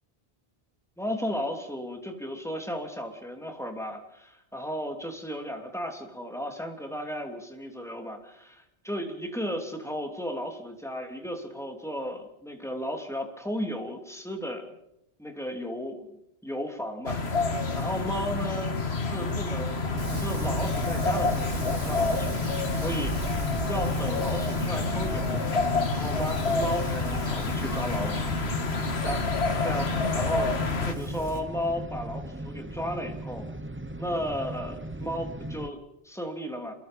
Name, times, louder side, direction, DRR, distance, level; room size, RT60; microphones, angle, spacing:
voice 1, 1.0-14.7 15.2-16.2 16.4-17.2 17.7-18.8 19.0-19.8 20.2-23.3 23.6-25.4 25.8-28.3 29.0-29.3 29.6-30.5 30.8-33.4 34.0-36.7, equal, 5° left, 3 dB, 3.1 m, -34 dB
sound 1, 17.1-30.9, left 3 dB, 80° left, 1.9 m, -28 dB
sound 2, 19.9-35.7, right 1 dB, 15° right, 0.8 m, -38 dB
Wind, 20.0-31.4, right 2 dB, 75° right, 3.5 m, -38 dB
27.5 x 23.0 x 5.4 m, 0.83 s
omnidirectional pair, 1.1 m